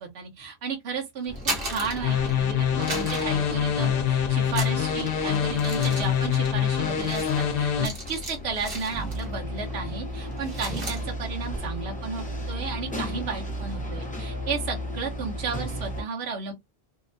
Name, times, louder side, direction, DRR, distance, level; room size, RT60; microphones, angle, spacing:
voice 1, 0.0-1.3 1.6-16.5, right 4 dB, 75° right, 1.0 m, -33 dB
sound 1, 1.2-2.5 2.8-4.1 4.4-9.4 9.7-9.9 10.2-11.0, right 2 dB, 60° right, 1.2 m, -36 dB
sound 2, 1.3-16.0, equal, 10° left, 0.5 m, -35 dB
sound 3, 2.0-7.9, left 8 dB, 65° left, 0.7 m, -25 dB
2.7 x 2.1 x 2.5 m
omnidirectional pair, 1.1 m